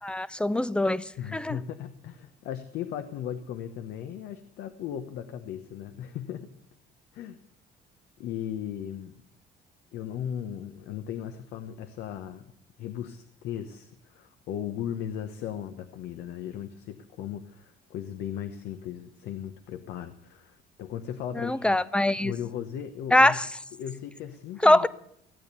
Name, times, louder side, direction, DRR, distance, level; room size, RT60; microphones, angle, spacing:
voice 1, 0.0-1.6 21.3-22.3 23.1-23.5 24.6-24.9, left 1 dB, 5° left, 0.5 m, -23 dB
voice 2, 1.2-6.5 7.1-7.4 8.2-9.1 9.9-12.5 12.8-21.8 22.2-23.4 23.8-24.9, left 9 dB, 80° left, 1.0 m, -37 dB
15.5 x 8.9 x 8.3 m
cardioid pair, 110°, 17 cm